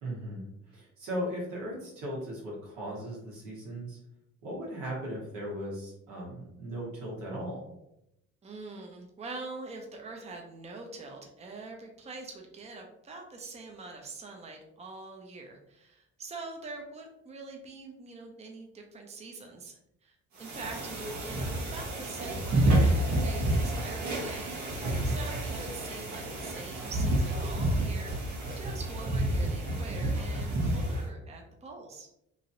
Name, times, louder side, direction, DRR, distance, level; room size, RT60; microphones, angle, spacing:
voice 1, 0.0-4.0 4.4-7.6 24.8-25.1, equal, 80° right, -4 dB, 1.4 m, -37 dB
voice 2, 8.4-24.6 25.0-32.1, right 3 dB, 20° right, 2 dB, 0.6 m, -44 dB
sound 1, 20.4-31.1, right 1 dB, 65° right, 1.2 m, -29 dB
3.1 x 2.8 x 2.6 m, 0.82 s
supercardioid pair, 65°, 32 cm